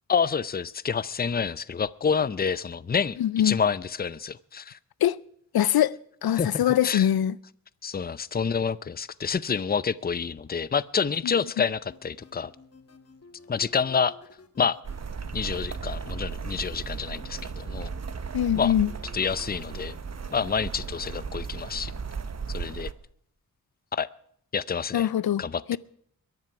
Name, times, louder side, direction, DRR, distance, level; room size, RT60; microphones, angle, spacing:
voice 1, 0.1-3.2 3.4-4.8 6.3-7.1 7.8-12.5 13.5-14.2 14.6-14.8 15.3-17.9 18.5-18.7 19.1-19.9 20.3-21.9 22.5-22.9 23.9-24.1 24.5-25.1 25.4-25.8, left 6 dB, 25° left, 0.5 m, -28 dB
voice 2, 3.2-3.6 5.0-5.2 5.5-7.4 11.2-11.3 18.3-18.9 24.9-25.4 25.7-25.8, left 11 dB, 85° left, 0.5 m, -23 dB
sound 1, 11.9-22.0, left 4 dB, 45° left, 2.1 m, -54 dB
sound 2, 14.8-22.9, right 5 dB, 45° right, 1.1 m, -36 dB
22.5 x 11.0 x 5.9 m
wide cardioid pair, 125°, 36 cm